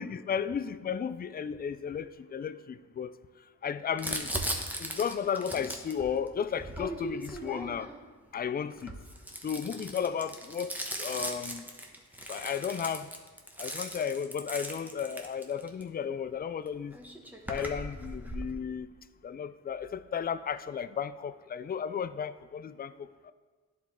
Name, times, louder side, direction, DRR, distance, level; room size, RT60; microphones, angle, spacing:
voice 1, 0.0-3.1 3.6-4.3 4.8-7.9 8.3-8.9 9.4-11.6 12.3-13.1 13.6-17.0 17.5-18.9 19.2-23.3, left 7 dB, 30° left, 0.4 m, -34 dB
Crumpling crinkling, 4.0-8.0 8.7-15.8 16.7-16.8 16.9-18.5, right 1 dB, 5° right, 1.1 m, -38 dB
10.5 x 4.3 x 3.6 m
supercardioid pair, 50°, 32 cm